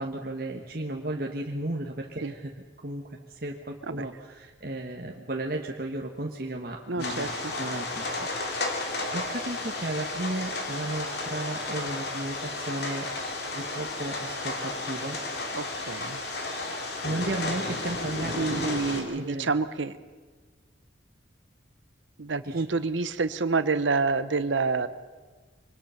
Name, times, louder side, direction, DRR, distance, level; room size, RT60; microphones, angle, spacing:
voice 1, 0.0-2.5 2.8-7.3 7.6-13.1 13.5-15.2 16.6-18.7 19.1-19.5 22.4-22.6, right 1 dB, 50° right, 0 dB, 1.5 m, -34 dB
voice 2, 6.9-7.5 15.5-16.2 18.4-19.9 22.2-24.9, right 4 dB, 85° right, 12 dB, 0.9 m, -28 dB
sound 1, 7.0-19.0, left 2 dB, 60° left, 3.1 m, -33 dB
24.5 x 20.0 x 5.8 m, 1.4 s
head